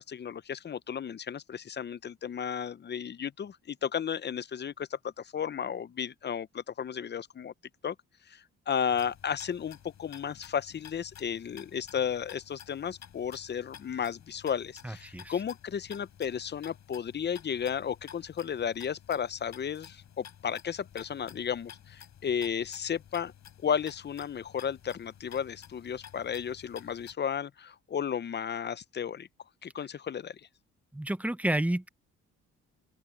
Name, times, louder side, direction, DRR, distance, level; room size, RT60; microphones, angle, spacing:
voice 1, 0.0-7.5 7.8-8.0 8.3-23.3 23.6-29.3 29.6-30.4, left 8 dB, 35° left, 0.6 m, -34 dB
sound 1, 8.9-27.1, left 9 dB, 65° left, 8.0 m, -52 dB
voice 2, 14.8-15.3 30.9-31.9, right 1 dB, 5° right, 0.7 m, -30 dB
open air
cardioid pair, 90°, 30 cm